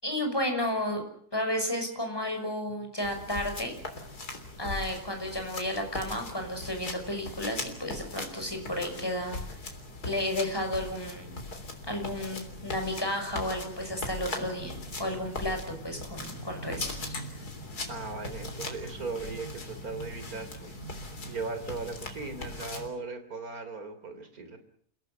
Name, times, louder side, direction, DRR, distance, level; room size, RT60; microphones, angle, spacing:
voice 1, 0.0-1.0 1.3-3.7 4.6-9.6 10.0-11.4 11.9-14.7 15.0-17.1, left 1 dB, 15° left, 4 dB, 6.0 m, -32 dB
sound 1, 3.0-22.9, left 2 dB, 75° left, 4.0 m, -40 dB
voice 2, 17.9-20.7 21.2-24.6, right 4 dB, 65° right, 9 dB, 3.8 m, -38 dB
29.5 x 17.5 x 7.9 m, 0.62 s
omnidirectional pair, 1.6 m